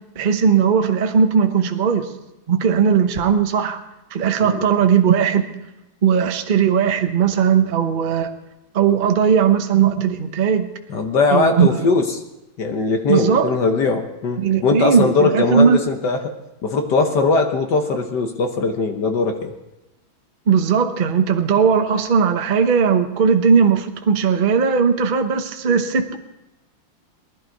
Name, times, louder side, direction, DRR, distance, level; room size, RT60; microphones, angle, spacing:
voice 1, 0.2-2.1 2.5-3.8 4.1-5.4 6.0-8.3 8.7-10.7 11.3-11.9 13.1-13.5 14.4-15.8 20.5-26.2, right 7 dB, 45° right, 6 dB, 0.6 m, -17 dB
voice 2, 10.9-12.1 12.6-16.3 16.6-19.5, left 4 dB, 60° left, 4 dB, 1.6 m, -20 dB
19.5 x 12.0 x 4.6 m, 0.95 s
omnidirectional pair, 2.2 m